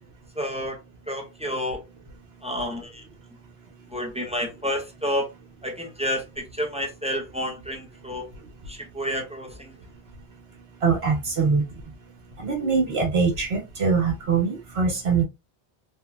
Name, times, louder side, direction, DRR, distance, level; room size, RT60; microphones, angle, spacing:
voice 1, 0.3-0.8 1.1-1.8 2.4-3.0 3.9-5.3 5.6-8.3 8.7-9.7, equal, 5° right, 0.8 m, -30 dB
voice 2, 10.8-11.6 12.4-15.2, right 5 dB, 70° right, 1.6 m, -23 dB
3.6 x 2.9 x 2.4 m
omnidirectional pair, 1.1 m